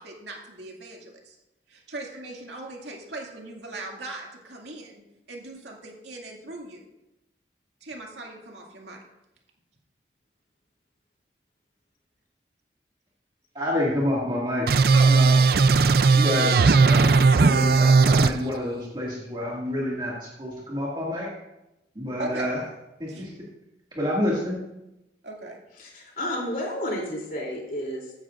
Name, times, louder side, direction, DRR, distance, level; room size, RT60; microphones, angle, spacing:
voice 1, 0.0-1.4 1.7-5.0 5.3-6.8 7.8-9.0 14.9-15.4 22.2-22.5 23.1-23.2 25.2-25.6, right 2 dB, 80° right, -1 dB, 2.3 m, -38 dB
voice 2, 13.5-14.7 15.1-15.4 16.1-21.3 22.0-22.6 23.0-23.3 24.0-24.6, left 1 dB, 25° right, -6 dB, 2.1 m, -28 dB
sound 1, 14.7-18.3, right 4 dB, 55° right, 0.4 m, -17 dB
voice 3, 25.8-28.1, equal, 50° left, -1 dB, 3.1 m, -31 dB
16.0 x 10.5 x 2.5 m, 0.92 s
head